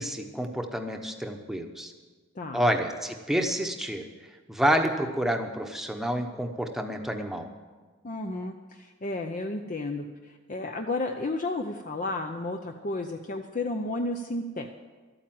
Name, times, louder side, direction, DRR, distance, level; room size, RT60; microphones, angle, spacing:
voice 1, 0.0-1.9 2.5-4.0 4.5-7.5, equal, ahead, 3 dB, 1.0 m, -28 dB
voice 2, 2.4-2.7 8.0-14.7, left 2 dB, 40° left, 4 dB, 0.6 m, -32 dB
12.5 x 8.9 x 7.6 m, 1.4 s
head